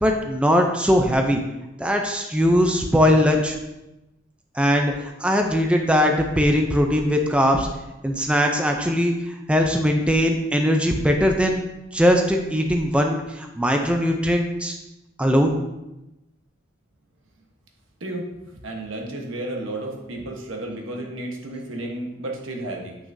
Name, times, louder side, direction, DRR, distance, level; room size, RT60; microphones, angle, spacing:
voice 1, 0.0-1.4 1.8-3.6 4.6-7.7 8.0-11.6 11.9-14.8 15.2-15.5, equal, 5° right, 3 dB, 0.5 m, -20 dB
voice 2, 18.6-23.0, right 1 dB, 75° right, 1 dB, 1.2 m, -32 dB
8.5 x 6.0 x 2.6 m, 0.96 s
head